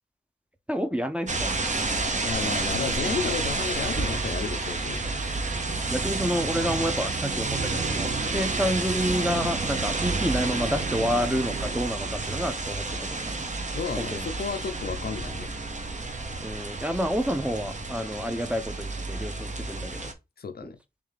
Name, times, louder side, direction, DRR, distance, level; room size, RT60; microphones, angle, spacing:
voice 1, 0.7-1.5 5.9-13.4 14.0-14.3 16.4-20.1 20.6-20.7, equal, 5° right, 0.6 m, -29 dB
sound 1, 1.3-20.1, right 3 dB, 45° right, 0.7 m, -30 dB
voice 2, 2.2-5.3 13.7-15.5 20.4-20.8, left 6 dB, 65° left, 0.5 m, -32 dB
3.6 x 3.2 x 3.3 m
wide cardioid pair, 60°, 18 cm